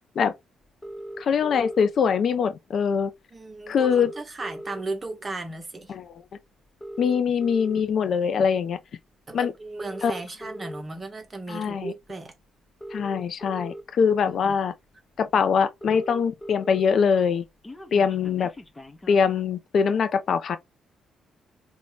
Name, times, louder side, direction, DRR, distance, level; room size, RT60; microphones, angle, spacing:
sound 1, 0.8-1.8 3.0-3.1 3.4-3.5 3.6-5.1 5.6-5.8 6.6-7.8 8.5-8.7 9.7-10.8 12.0-12.1 12.6-13.8 14.5-14.6 14.9-15.0 15.2-15.3 15.5-16.8 17.1-19.3, equal, 25° left, 0.6 m, -39 dB
voice 1, 1.2-3.1 3.7-4.1 5.9-6.1 7.0-8.8 9.3-9.5 10.0-10.1 11.5-11.9 12.9-14.7 15.2-17.5 17.9-18.5 19.1-20.6, left 6 dB, 60° left, 0.3 m, -23 dB
voice 2, 3.3-5.9 9.3-12.3 14.3-14.6, right 2 dB, 30° right, 0.8 m, -36 dB
2.6 x 2.1 x 3.1 m
supercardioid pair, 55°, 0 cm